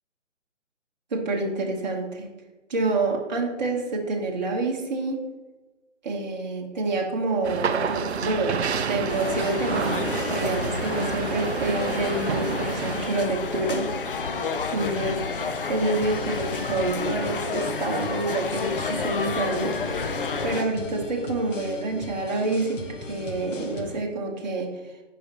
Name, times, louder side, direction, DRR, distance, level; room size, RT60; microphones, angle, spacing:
voice 1, 1.1-2.3 2.7-5.3 6.0-8.6 8.9-13.9 14.7-24.9, right 2 dB, 35° right, -1 dB, 1.1 m, -28 dB
sound 1, 7.4-13.1, right 6 dB, 60° right, 0.5 m, -29 dB
sound 2, 9.1-20.6, left 4 dB, 45° left, 0.5 m, -30 dB
sound 3, 16.0-24.0, left 3 dB, 85° left, 1.0 m, -38 dB
9.1 x 5.1 x 2.9 m, 1.2 s
figure-of-eight pair, 150°, 37 cm